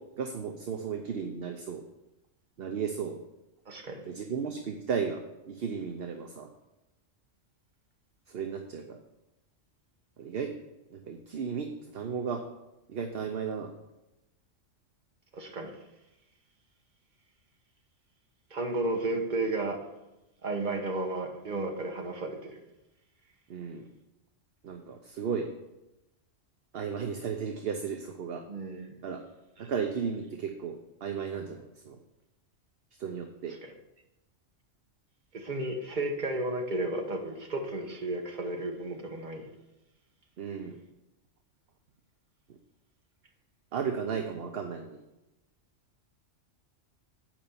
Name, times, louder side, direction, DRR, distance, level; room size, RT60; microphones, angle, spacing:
voice 1, 0.2-1.8 2.6-3.2 4.1-6.5 8.3-9.0 10.2-10.5 10.9-12.4 12.9-13.7 23.5-23.9 24.6-25.5 26.7-28.4 29.0-29.2 29.6-32.0 33.0-33.5 40.4-40.8 43.7-45.0, right 6 dB, 55° right, 4 dB, 0.9 m, -34 dB
voice 2, 3.7-4.0 15.3-15.8 18.5-19.8 20.4-22.6 28.5-28.9 33.6-33.7 35.3-39.5, right 2 dB, 40° right, 3 dB, 1.3 m, -33 dB
8.8 x 5.3 x 7.0 m, 0.96 s
omnidirectional pair, 1.3 m